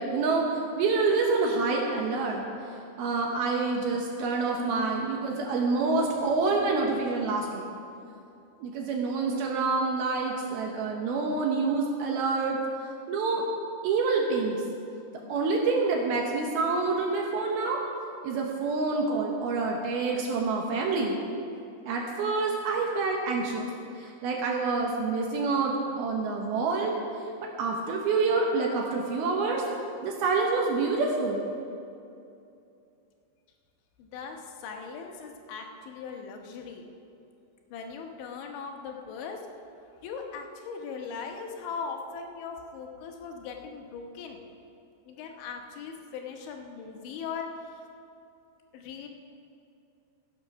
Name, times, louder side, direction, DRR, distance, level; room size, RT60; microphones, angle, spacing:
voice 1, 0.0-7.7 8.6-12.6 13.1-13.4 13.8-14.6 15.3-17.8 18.2-21.2 21.9-23.7 24.0-26.9 27.6-29.6 30.0-31.5, right 4 dB, 70° right, 0 dB, 2.6 m, -27 dB
voice 2, 34.0-36.8 37.7-39.4 40.0-44.4 45.1-47.8 48.7-49.1, left 5 dB, 85° left, 2 dB, 3.5 m, -39 dB
15.5 x 8.0 x 6.1 m, 2.6 s
omnidirectional pair, 5.2 m